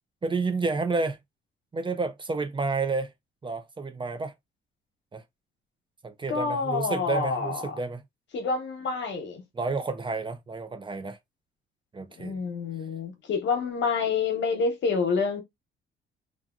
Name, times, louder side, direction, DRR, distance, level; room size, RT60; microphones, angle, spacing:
voice 1, 0.2-1.2 1.7-3.1 3.4-4.3 5.1-5.2 6.0-8.0 9.5-11.2 11.9-12.4, right 3 dB, 25° right, 0.5 m, -30 dB
voice 2, 6.3-7.7 8.3-9.4 12.2-15.4, left 5 dB, 65° left, 1.0 m, -28 dB
2.6 x 2.5 x 2.4 m
cardioid pair, 90°, 20 cm